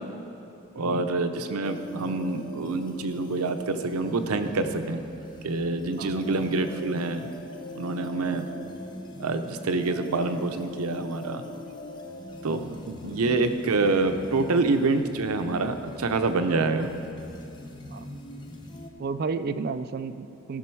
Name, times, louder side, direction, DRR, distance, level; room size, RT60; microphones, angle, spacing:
voice 1, 0.7-5.0 5.4-7.3 7.7-8.5 9.2-11.4 12.4-12.7 13.0-16.9, right 3 dB, 90° right, 8 dB, 0.6 m, -26 dB
sound 1, 1.6-18.9, left 1 dB, 20° left, 0.5 m, -42 dB
voice 2, 12.5-13.2 17.9-18.1 19.0-20.6, right 4 dB, 45° right, 10 dB, 0.3 m, -33 dB
15.0 x 6.1 x 4.6 m, 2.8 s
head